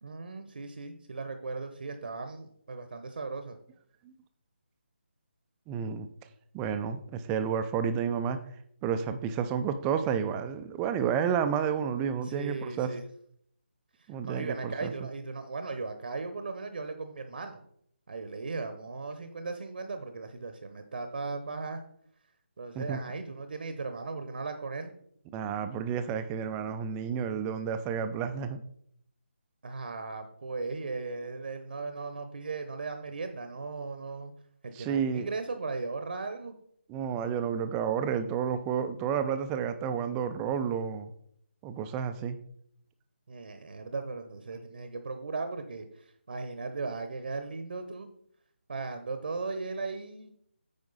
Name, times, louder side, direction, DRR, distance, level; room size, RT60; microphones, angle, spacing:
voice 1, 0.0-3.6 12.2-13.1 14.0-17.6 18.1-21.8 22.6-24.9 29.6-34.3 34.6-36.5 43.3-48.1 48.7-50.3, right 3 dB, 55° right, 8 dB, 0.8 m, -37 dB
voice 2, 5.7-6.1 6.5-8.4 8.8-12.9 14.1-14.9 22.8-23.0 25.3-28.6 34.8-35.3 36.9-41.1 41.6-42.4, right 7 dB, 10° right, 9 dB, 0.4 m, -31 dB
9.0 x 5.0 x 4.0 m, 0.68 s
figure-of-eight pair, 155°, 6 cm